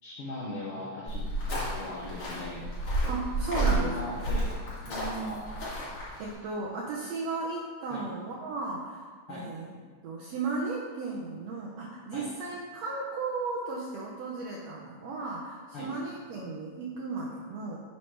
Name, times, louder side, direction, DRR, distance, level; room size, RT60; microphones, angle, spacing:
voice 1, 0.0-1.2 1.5-2.6 3.6-4.5 4.8-5.5 7.9-8.1 9.3-9.5 12.1-12.3 15.7-15.9, left 1 dB, 70° left, -6 dB, 1.4 m, -38 dB
sound 1, 1.1-6.3, right 1 dB, 50° left, 3.1 m, -31 dB
voice 2, 3.1-4.0 6.2-9.0 9.3-9.7 10.0-17.8, right 3 dB, 75° right, -3 dB, 1.5 m, -35 dB
9.4 x 5.6 x 3.3 m, 1.5 s
omnidirectional pair, 3.8 m